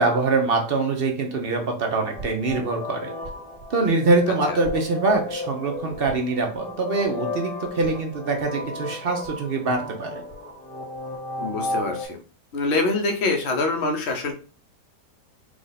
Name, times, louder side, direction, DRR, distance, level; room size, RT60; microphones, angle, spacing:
voice 1, 0.0-3.1 3.7-10.2, right 3 dB, 50° right, 2 dB, 0.7 m, -24 dB
sound 1, 2.1-12.1, left 2 dB, 35° right, 1.5 m, -34 dB
voice 2, 11.4-12.2 12.5-14.3, left 3 dB, 50° left, 4 dB, 0.9 m, -25 dB
4.8 x 2.4 x 4.0 m, 0.39 s
omnidirectional pair, 1.8 m